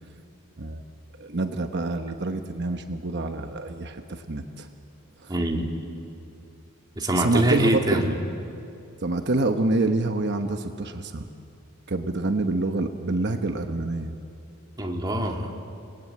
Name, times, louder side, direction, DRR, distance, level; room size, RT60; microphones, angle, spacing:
voice 1, 1.2-4.7 5.2-5.3 7.1-8.0 9.0-11.3 11.9-14.1, right 2 dB, 50° right, 6 dB, 1.0 m, -27 dB
voice 2, 5.3-5.7 7.0-8.1 14.8-15.5, right 1 dB, 20° right, 1 dB, 2.2 m, -24 dB
28.5 x 19.0 x 8.8 m, 2.6 s
head